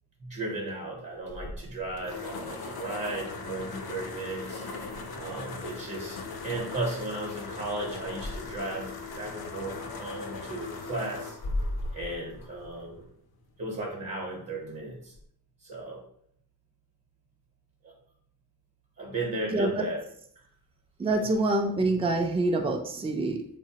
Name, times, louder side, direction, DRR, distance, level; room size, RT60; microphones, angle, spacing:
voice 1, 0.2-4.6 5.2-11.4 11.9-13.1 13.6-15.1 15.6-16.0 17.8-17.9 19.0-20.0 21.2-21.3, right 2 dB, 45° right, -1 dB, 0.8 m, -35 dB
sound 1, 1.3-13.1, left 3 dB, 70° left, 0.5 m, -38 dB
voice 2, 19.5-19.9 21.0-23.5, right 2 dB, 15° right, 3 dB, 0.3 m, -26 dB
3.4 x 2.0 x 2.7 m, 0.66 s
wide cardioid pair, 95°, 39 cm